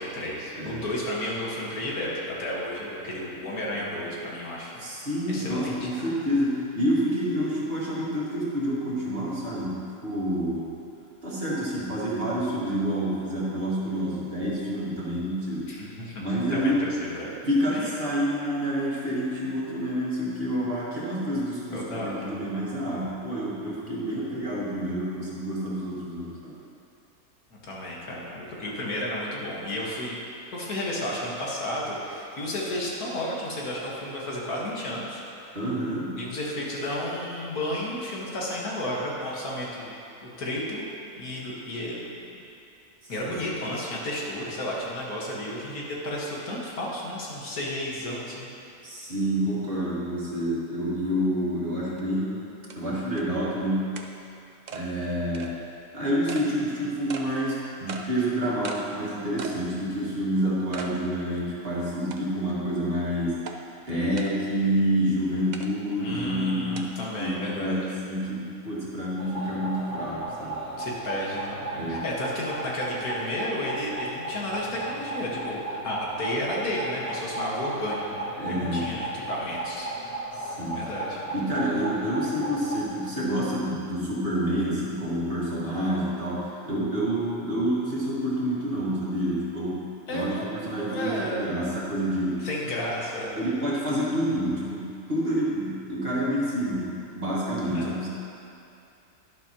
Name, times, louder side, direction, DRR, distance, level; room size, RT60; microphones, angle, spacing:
voice 1, 0.0-4.8 5.3-6.1 15.7-17.3 17.7-17.9 21.7-22.5 27.5-30.2 30.5-35.2 36.2-39.9 40.4-40.8 41.2-42.1 43.1-48.5 66.0-67.8 70.8-71.6 71.9-79.9 80.7-81.2 90.1-90.5 90.9-91.7 92.4-93.4 97.7-97.9, left 1 dB, 85° left, -4 dB, 2.1 m, -32 dB
voice 2, 4.8-10.7 11.2-15.8 16.2-16.9 17.5-26.5 35.5-36.2 43.0-43.4 48.8-52.3 52.8-54.0 54.7-55.6 55.9-63.6 63.9-70.6 71.7-72.0 78.4-78.9 80.3-80.9 81.3-92.5 93.4-98.1, equal, 40° right, -7 dB, 2.1 m, -28 dB
sound 1, 52.0-52.1 52.7-52.8 53.2-53.3 54.0-54.1 54.7-54.8 55.3-55.5 56.3-56.5 57.1-57.3 57.9-58.1 58.6-58.8 59.4-59.6 60.0-60.1 60.7-60.9 61.4-61.5 62.1-62.5 63.5-63.6 64.2-64.3 65.5-65.7 66.8-66.9, right 5 dB, 60° right, 0.4 m, -37 dB
sound 2, 69.2-82.8, right 2 dB, 25° left, 1.5 m, -35 dB
11.5 x 10.5 x 3.0 m, 2.7 s
omnidirectional pair, 1.5 m